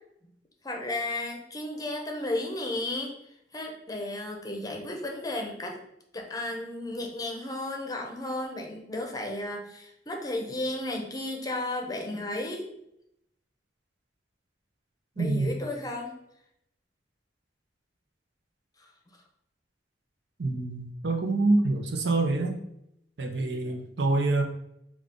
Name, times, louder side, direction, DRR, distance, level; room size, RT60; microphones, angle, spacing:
voice 1, 0.6-3.1 3.5-5.8 6.1-12.7 15.2-16.1, left 1 dB, 20° left, 1 dB, 0.6 m, -33 dB
voice 2, 15.2-15.5 20.4-22.6 23.2-24.4, right 2 dB, 80° right, 4 dB, 0.6 m, -26 dB
5.2 x 2.4 x 3.7 m, 0.78 s
head